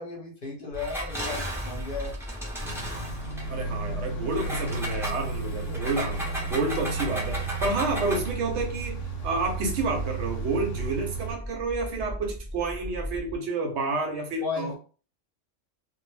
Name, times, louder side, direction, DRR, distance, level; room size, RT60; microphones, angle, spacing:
voice 1, 0.0-2.1 5.7-5.8 14.4-14.8, left 4 dB, 50° left, 0.9 m, -35 dB
sound 1, 0.7-13.4, equal, 25° left, 0.8 m, -39 dB
Engine, 0.7-3.5 4.3-8.4, equal, 5° right, 0.4 m, -36 dB
sound 2, 2.6-11.4, right 4 dB, 85° left, 1.0 m, -34 dB
voice 2, 3.5-14.8, right 3 dB, 70° right, 0.8 m, -30 dB
2.2 x 2.0 x 3.1 m
omnidirectional pair, 1.3 m